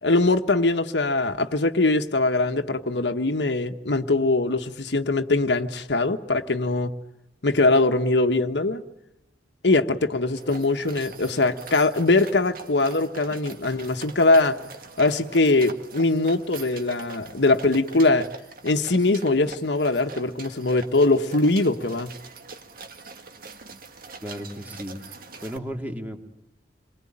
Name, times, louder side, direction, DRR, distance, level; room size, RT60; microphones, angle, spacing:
voice 1, 0.0-6.9 7.4-8.8 9.6-14.6 15.0-18.3 18.6-22.1, left 2 dB, 75° left, 7 dB, 1.3 m, -22 dB
sound 1, 10.4-25.6, right 4 dB, 55° right, 2.0 m, -43 dB
voice 2, 24.2-26.2, equal, 10° right, 4 dB, 2.6 m, -35 dB
28.0 x 22.5 x 8.8 m, 0.86 s
head